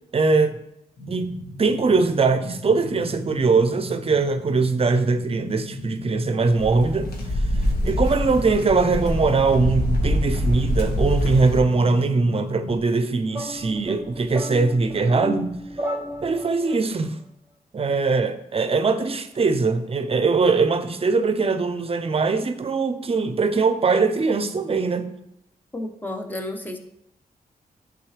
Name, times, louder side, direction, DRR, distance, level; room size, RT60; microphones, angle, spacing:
voice 1, 0.1-0.6 1.1-7.1 7.8-15.6 16.2-17.2 17.7-25.1, right 4 dB, 40° right, 0.6 m, -21 dB
sound 1, 1.0-12.8, left 1 dB, 60° left, 1.7 m, -36 dB
sound 2, 6.6-11.6, equal, 85° left, 1.4 m, -25 dB
sound 3, 13.3-16.8, equal, 15° right, 1.2 m, -33 dB
voice 2, 25.7-26.8, left 1 dB, 10° left, 0.8 m, -31 dB
10.5 x 3.9 x 3.3 m
wide cardioid pair, 110°, 16 cm